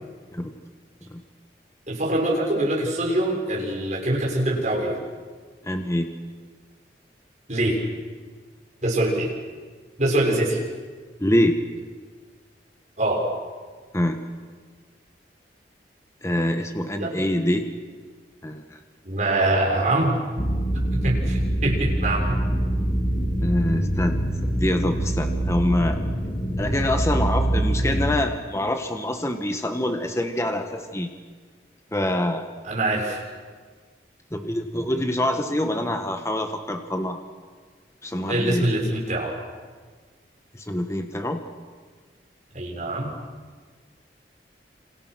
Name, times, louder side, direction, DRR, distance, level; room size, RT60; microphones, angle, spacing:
voice 1, 1.9-5.0 7.5-7.8 8.8-9.3 10.0-10.6 13.0-13.3 17.0-17.2 19.0-20.2 20.7-22.4 32.6-33.2 38.3-39.3 42.5-43.1, right 1 dB, 40° right, -2 dB, 6.7 m, -24 dB
voice 2, 5.6-6.1 11.2-11.6 13.9-14.2 16.2-17.7 18.4-18.8 23.4-26.0 26.6-31.1 31.9-32.4 34.3-37.2 38.0-38.7 40.5-41.4, left 1 dB, 15° left, 5 dB, 1.4 m, -25 dB
sound 1, 20.4-28.2, right 1 dB, 35° left, 2.4 m, -24 dB
28.5 x 27.5 x 6.3 m, 1.5 s
head